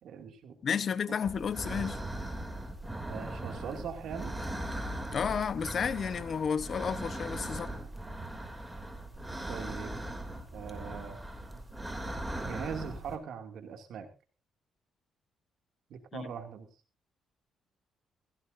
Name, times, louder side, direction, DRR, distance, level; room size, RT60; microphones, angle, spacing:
voice 1, 0.0-0.6 1.1-1.2 3.1-4.4 9.5-10.1 10.5-11.2 12.4-14.1 15.9-16.7, right 7 dB, 70° right, 2.6 m, -41 dB
voice 2, 0.6-2.0 5.1-7.7 16.1-16.3, left 7 dB, 50° left, 1.1 m, -32 dB
sound 1, 1.2-13.2, right 1 dB, 10° right, 3.0 m, -39 dB
16.0 x 16.0 x 2.7 m
cardioid pair, 90°, 0 cm